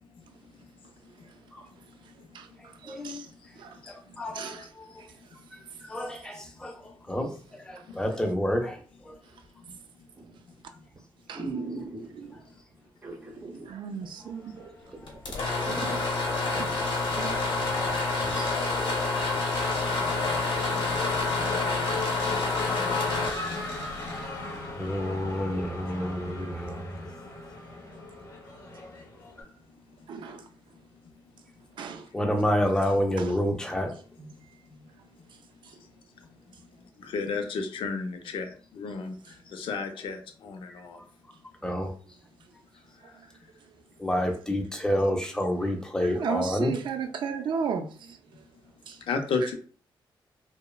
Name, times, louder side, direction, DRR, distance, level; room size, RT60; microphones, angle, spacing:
voice 1, 0.8-5.8 7.7-8.0 9.2-9.5 11.3-12.4 13.6-14.9 16.5-17.8 18.3-18.6 30.1-30.5 31.7-32.1 33.2-33.4 34.2-34.3 35.3-35.8 42.0-42.5 43.0-43.8 44.1-44.4 45.4-45.7 46.0-48.5 48.9-49.0 49.4-49.5, right 6 dB, 65° right, 0.4 m, -38 dB
voice 2, 2.8-3.2 3.9-4.8 5.8-6.8 7.1-9.1 24.8-27.1 32.1-33.9 40.9-41.0 41.6-41.9 44.0-46.7, equal, 10° left, 0.4 m, -29 dB
sound 1, 10.2-10.5 11.0-11.1 11.3-12.4 13.0-13.7 14.0-14.1 14.6-14.7 14.9-16.8 17.2-17.3, right 3 dB, 25° right, 0.7 m, -38 dB
Race car auto racing / Accelerating revving vroom, 14.4-15.4 15.7-29.4, left 3 dB, 40° left, 0.7 m, -39 dB
sound 2, 15.1-24.9, left 3 dB, 65° left, 0.9 m, -28 dB
voice 3, 37.0-39.1 39.5-41.0 49.1-49.5, left 4 dB, 80° left, 0.5 m, -32 dB
2.9 x 2.0 x 2.3 m
wide cardioid pair, 170°, 9 cm